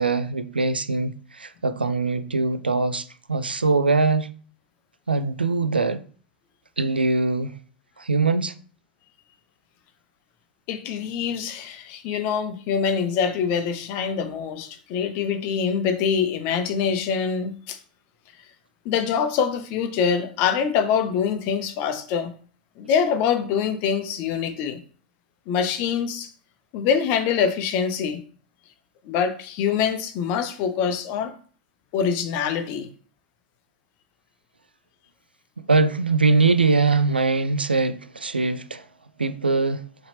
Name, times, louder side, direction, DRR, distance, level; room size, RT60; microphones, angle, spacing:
voice 1, 0.0-4.3 5.1-6.0 6.8-7.6 8.0-8.5 35.7-38.8 39.2-39.8, right 3 dB, 85° right, 0.4 m, -22 dB
voice 2, 10.7-17.8 18.8-22.3 22.8-24.8 25.5-26.3 26.7-28.2 29.0-31.3 31.9-32.9, left 7 dB, 45° left, 0.7 m, -24 dB
4.8 x 3.0 x 3.3 m
figure-of-eight pair, 95°, 5 cm